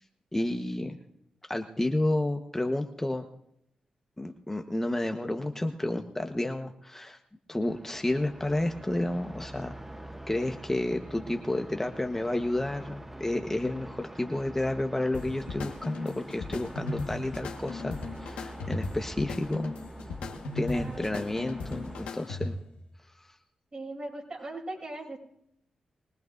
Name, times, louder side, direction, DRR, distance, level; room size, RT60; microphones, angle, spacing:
voice 1, 0.3-1.0 1.5-3.3 4.2-7.2 7.5-9.7 10.3-19.7 20.5-22.5, left 1 dB, 15° left, 4 dB, 1.2 m, -31 dB
sound 1, 7.7-22.1, right 1 dB, 15° right, 0.9 m, -45 dB
sound 2, 15.1-22.8, left 2 dB, 90° left, 1.5 m, -37 dB
voice 2, 20.7-21.1 23.7-25.2, right 2 dB, 45° right, 1 dB, 6.2 m, -39 dB
23.0 x 18.5 x 2.6 m, 0.76 s
supercardioid pair, 50°, 2 cm